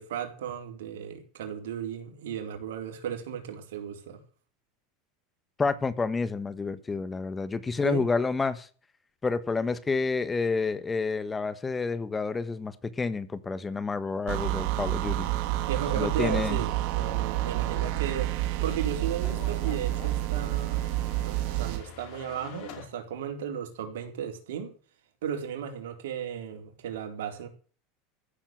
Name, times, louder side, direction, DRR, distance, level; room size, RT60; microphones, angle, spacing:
voice 1, 0.0-4.2 7.8-8.0 15.6-20.9 21.2-24.7 25.2-27.5, right 8 dB, 85° right, 4.1 m, -35 dB
voice 2, 5.6-8.7 9.2-15.3 16.0-16.6, left 4 dB, 15° left, 1.3 m, -29 dB
sound 1, 14.3-21.8, right 15 dB, 65° right, 2.1 m, -29 dB
sound 2, 15.3-22.9, left 8 dB, 55° left, 5.3 m, -48 dB
15.0 x 7.3 x 9.3 m
supercardioid pair, 120°, 0 cm